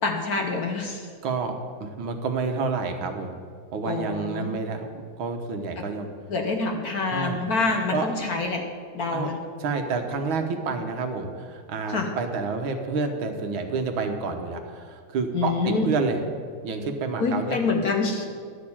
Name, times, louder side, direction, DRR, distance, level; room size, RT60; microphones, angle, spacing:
voice 1, 0.0-1.1 3.8-4.6 6.3-8.6 8.9-9.4 11.9-12.1 15.3-15.9 17.2-18.2, left 3 dB, 55° left, 3 dB, 1.3 m, -26 dB
voice 2, 1.2-3.3 3.7-4.9 5.2-6.1 7.1-7.4 7.9-8.1 9.1-9.3 9.6-16.2 16.6-17.6, right 4 dB, 70° right, 5 dB, 1.8 m, -29 dB
12.0 x 6.6 x 8.6 m, 2.1 s
omnidirectional pair, 2.4 m